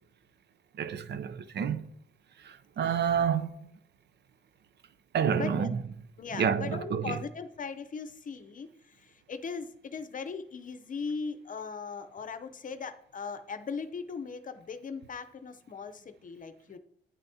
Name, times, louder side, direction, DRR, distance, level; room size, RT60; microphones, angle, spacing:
voice 1, 0.8-1.9 2.4-3.7 5.1-5.8 6.4-7.2, right 7 dB, 60° right, 0.7 m, -29 dB
voice 2, 5.3-5.7 6.2-16.8, left 5 dB, 40° left, 0.7 m, -39 dB
10.5 x 9.2 x 2.8 m
cardioid pair, 90°, 20 cm